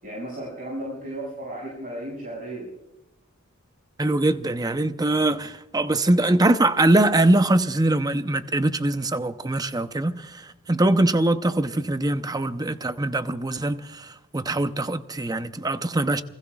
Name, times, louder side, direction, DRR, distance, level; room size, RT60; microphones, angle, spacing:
voice 1, 0.0-2.7, right 1 dB, 45° right, 6.5 m, -34 dB
voice 2, 4.0-16.2, right 2 dB, 20° right, 0.7 m, -22 dB
28.5 x 20.5 x 2.4 m
head